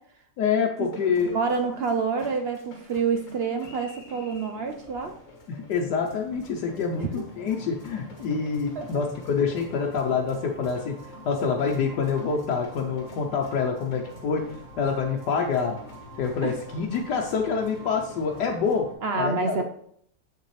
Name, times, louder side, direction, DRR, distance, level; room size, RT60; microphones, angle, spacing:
voice 1, 0.4-1.3 5.5-14.4 14.8-15.8 16.2-18.9 19.1-19.6, left 5 dB, 80° left, -1 dB, 1.3 m, -26 dB
sound 1, 0.9-18.8, left 1 dB, 50° left, 1.8 m, -48 dB
voice 2, 1.2-5.1 7.0-7.2 8.8-8.9 16.4-16.5 19.0-19.6, right 5 dB, 70° right, 5 dB, 0.5 m, -27 dB
sound 2, 4.6-18.9, equal, 5° right, 2.2 m, -47 dB
7.5 x 6.6 x 3.2 m, 0.65 s
omnidirectional pair, 1.7 m